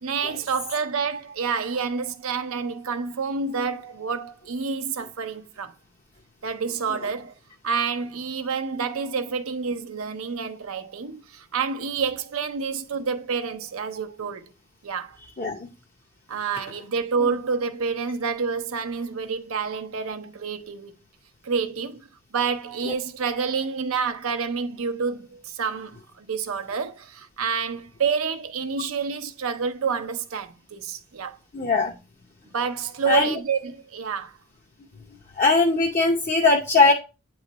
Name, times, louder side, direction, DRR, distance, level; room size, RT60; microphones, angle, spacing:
voice 1, 0.0-5.7 6.4-7.3 7.6-14.5 14.8-15.2 16.3-20.9 21.4-22.1 22.3-31.4 32.5-34.4, right 5 dB, 70° right, 0.6 m, -28 dB
voice 2, 31.5-31.9 33.1-33.3 35.4-36.9, left 3 dB, 35° left, 0.7 m, -20 dB
8.2 x 3.1 x 4.0 m
head